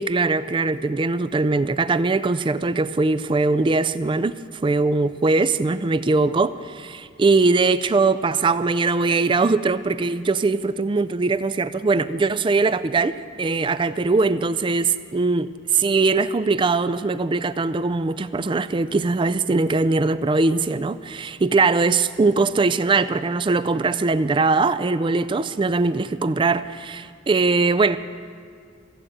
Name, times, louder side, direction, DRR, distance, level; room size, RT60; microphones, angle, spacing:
voice 1, 0.0-4.3 4.6-28.0, right 3 dB, 25° right, 13 dB, 0.3 m, -21 dB
15.0 x 8.6 x 7.9 m, 2.2 s
head